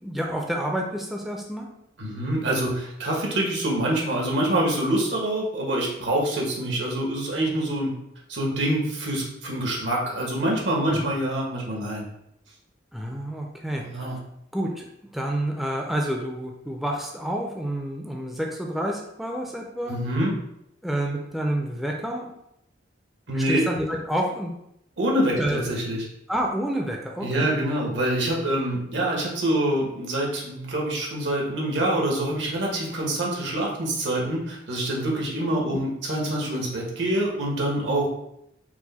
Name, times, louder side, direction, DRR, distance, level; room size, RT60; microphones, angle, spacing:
voice 1, 0.0-1.7 10.9-11.1 12.9-14.1 14.5-14.9 15.1-20.0 20.8-22.3 23.3-24.5 25.4-25.7 26.3-27.6, right 1 dB, ahead, 0 dB, 0.4 m, -29 dB
voice 2, 2.0-7.9 8.3-12.0 13.8-14.2 19.9-20.4 23.3-23.6 25.0-26.0 27.2-38.1, right 1 dB, 75° right, -2 dB, 1.2 m, -26 dB
4.6 x 2.1 x 4.0 m, 0.78 s
head